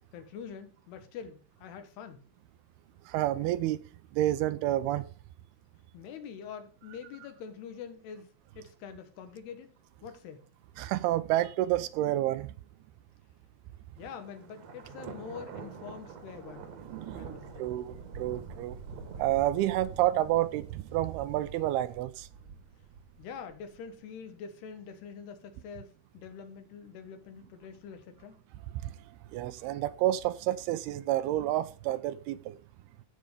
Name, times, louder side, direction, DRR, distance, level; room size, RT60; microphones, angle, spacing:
voice 1, 0.1-2.2 5.9-9.7 10.0-10.4 14.0-16.7 17.1-17.7 23.2-28.4, left 7 dB, 80° left, 3.4 m, -45 dB
voice 2, 3.1-3.8 4.1-5.1 10.8-12.5 16.9-18.8 19.2-22.3 28.8-28.9 29.3-32.6, right 14 dB, 80° right, 2.5 m, -29 dB
Thunder, 14.0-23.8, right 5 dB, 55° right, 2.0 m, -46 dB
15.0 x 5.2 x 5.1 m
omnidirectional pair, 4.6 m